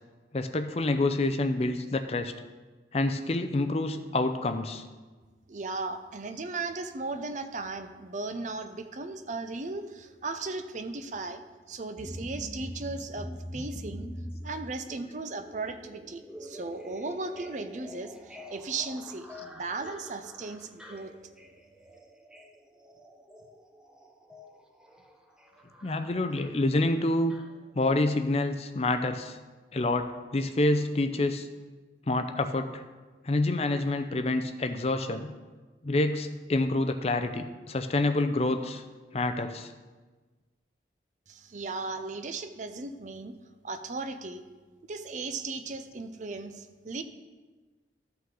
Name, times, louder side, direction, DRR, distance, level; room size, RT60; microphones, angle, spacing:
voice 1, 0.3-2.3 2.9-4.8 25.8-27.4 27.7-29.4 29.7-31.5 32.1-32.8 33.2-35.3 35.8-38.8 39.1-39.7, left 2 dB, 35° left, 8 dB, 0.5 m, -27 dB
voice 2, 5.5-11.4 11.7-14.1 14.4-21.1 41.3-43.4 43.6-44.4 44.9-47.0, right 3 dB, 45° right, 9 dB, 0.5 m, -36 dB
sound 1, 12.0-28.1 28.4-28.5, equal, 5° right, 0.6 m, -45 dB
12.5 x 5.7 x 3.8 m, 1.3 s
head